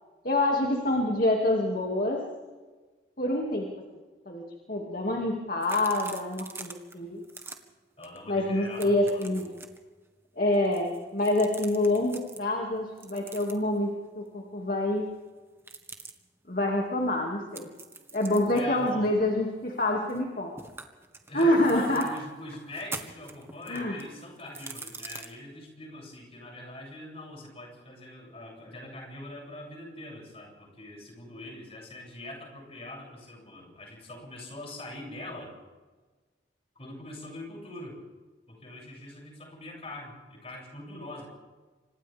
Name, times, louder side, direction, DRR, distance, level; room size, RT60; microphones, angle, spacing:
voice 1, 0.2-2.2 3.2-3.6 4.3-4.4 4.7-7.2 8.3-9.5 10.4-13.9 14.2-15.0 16.5-17.7 18.1-20.5 21.3-22.1 23.7-24.0, left 1 dB, 50° left, -1 dB, 2.7 m, -26 dB
sound 1, 5.6-6.9 7.2-7.6 8.0-8.2 8.4-9.8 10.5-12.4 13.0-13.8 15.6-16.1 17.5-20.3 20.6-22.2 22.7-25.3, right 3 dB, 15° right, 1.7 m, -44 dB
voice 2, 8.0-9.6 18.5-19.1 21.3-35.5 36.7-38.0 38.5-41.3, left 1 dB, 35° left, -1 dB, 8.0 m, -43 dB
28.0 x 26.0 x 3.7 m, 1.3 s
head